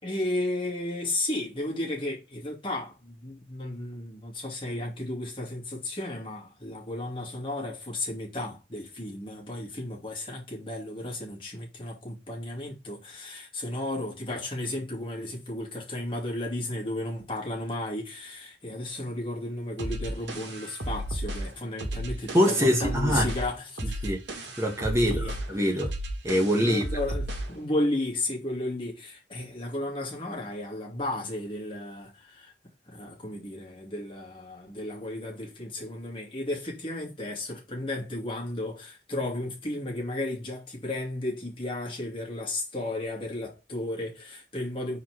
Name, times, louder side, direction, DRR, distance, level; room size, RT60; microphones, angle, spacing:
voice 1, 0.0-24.0 25.0-25.4 26.4-32.5 32.9-45.0, left 1 dB, 30° left, 2.6 m, -34 dB
sound 1, 19.8-27.6, right 1 dB, 70° right, 2.1 m, -34 dB
voice 2, 22.3-23.3 24.0-25.2 25.5-25.9 26.2-26.8, equal, 15° right, 2.0 m, -24 dB
4.8 x 4.5 x 6.1 m
head